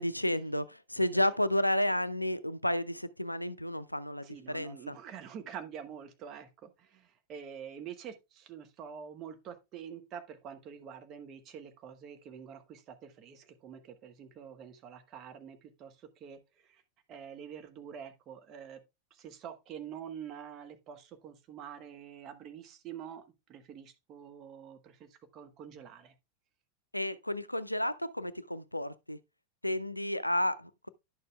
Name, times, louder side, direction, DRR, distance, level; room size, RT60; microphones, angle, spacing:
voice 1, 0.0-4.9 26.9-29.2 29.6-30.9, left 1 dB, 85° left, 0.4 m, -31 dB
voice 2, 4.2-16.8 17.1-18.8 19.1-26.1, right 8 dB, 35° right, 1.1 m, -47 dB
10.5 x 6.7 x 2.2 m
figure-of-eight pair, 90°, 0 cm